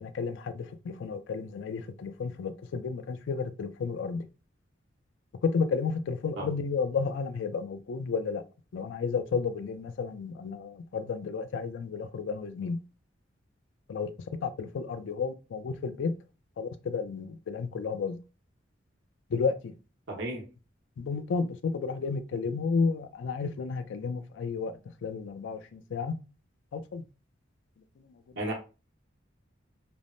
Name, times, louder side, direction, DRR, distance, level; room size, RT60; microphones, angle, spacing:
voice 1, 0.0-4.3 5.4-8.4 8.7-12.8 13.9-14.1 14.4-16.1 16.6-18.2 19.3-19.7 21.0-24.7 25.0-26.1 26.7-27.0, left 5 dB, 70° left, 0.4 m, -32 dB
voice 2, 20.1-20.4 28.4-28.5, right 1 dB, 65° right, 1.0 m, -33 dB
3.2 x 2.1 x 2.6 m
head